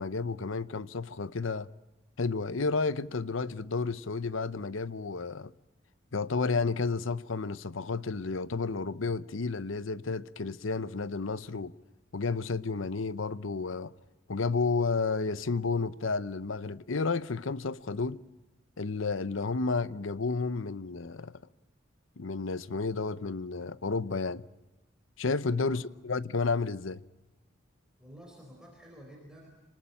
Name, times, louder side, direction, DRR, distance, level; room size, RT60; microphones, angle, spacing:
voice 1, 0.0-1.7 2.2-5.5 6.1-11.7 12.1-13.9 14.3-18.2 18.8-21.3 22.2-24.4 25.2-27.0, left 4 dB, 75° left, 0.8 m, -31 dB
voice 2, 28.0-29.5, equal, 5° right, 4.1 m, -51 dB
27.0 x 19.5 x 8.9 m
head